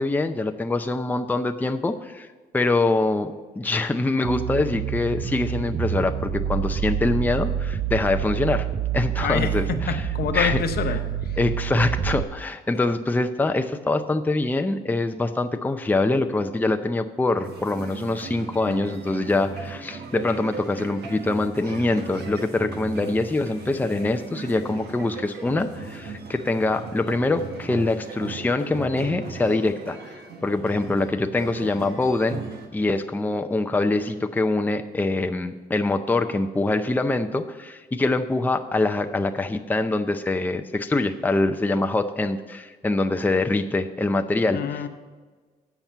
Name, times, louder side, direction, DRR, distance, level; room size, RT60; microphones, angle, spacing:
voice 1, 0.0-2.3 2.5-8.7 8.9-10.1 10.3-10.6 11.4-32.4 32.7-44.8, left 2 dB, 10° left, 7 dB, 0.5 m, -24 dB
sound 1, 4.2-12.2, right 9 dB, 45° right, 0.6 m, -27 dB
voice 2, 9.2-11.0 44.5-44.9, left 7 dB, 70° left, 8 dB, 0.9 m, -26 dB
sound 2, 17.3-32.7, right 4 dB, 80° right, 1.4 m, -37 dB
8.8 x 5.9 x 6.7 m, 1.4 s
cardioid pair, 90°, 17 cm